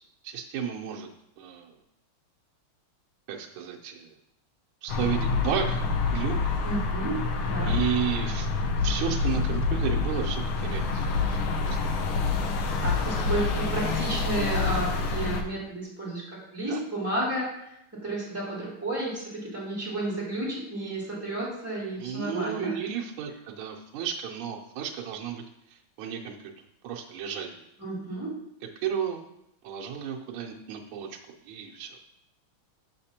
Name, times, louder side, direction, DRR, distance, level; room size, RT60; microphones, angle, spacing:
voice 1, 0.2-1.1 1.4-1.7 3.3-4.1 4.8-5.8 6.1-6.5 7.6-8.5 8.8-11.4 11.7-11.8 16.7-16.8 22.0-25.4 25.7-26.5 26.8-27.6 28.8-29.2 29.6-31.2 31.5-32.0, right 8 dB, 75° right, 0 dB, 1.5 m, -33 dB
sound 1, 4.9-15.4, left 4 dB, 75° left, 1.5 m, -27 dB
voice 2, 6.6-7.8 12.8-17.5 17.9-22.8 27.8-28.4, right 2 dB, 5° right, -7 dB, 2.2 m, -32 dB
6.6 x 5.7 x 2.8 m, 0.81 s
omnidirectional pair, 2.4 m